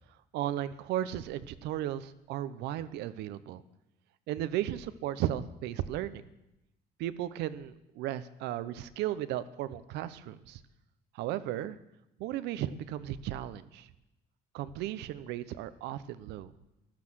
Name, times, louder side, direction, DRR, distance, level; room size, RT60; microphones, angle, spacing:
voice 1, 0.3-3.6 4.3-6.3 7.0-10.6 11.1-11.8 12.2-13.9 14.5-16.5, right 12 dB, 85° right, 14 dB, 0.8 m, -35 dB
14.5 x 12.0 x 6.3 m, 0.89 s
cardioid pair, 110°, 17 cm